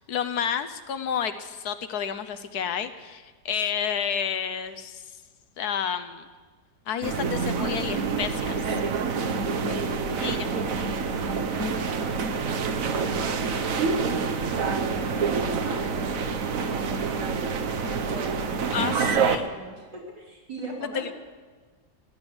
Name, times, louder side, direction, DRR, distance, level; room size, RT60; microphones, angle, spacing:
voice 1, 0.0-5.0 5.6-6.3 6.9-8.7 10.2-10.5 18.7-19.5 20.9-21.1, left 8 dB, 65° left, 10 dB, 1.3 m, -30 dB
sound 1, 7.0-19.4, right 5 dB, 55° right, 1.2 m, -27 dB
voice 2, 9.0-10.7 11.5-17.4 17.8-19.0 19.3-21.1, right 1 dB, 80° right, -3 dB, 4.5 m, -41 dB
16.0 x 11.5 x 7.9 m, 1.4 s
omnidirectional pair, 1.8 m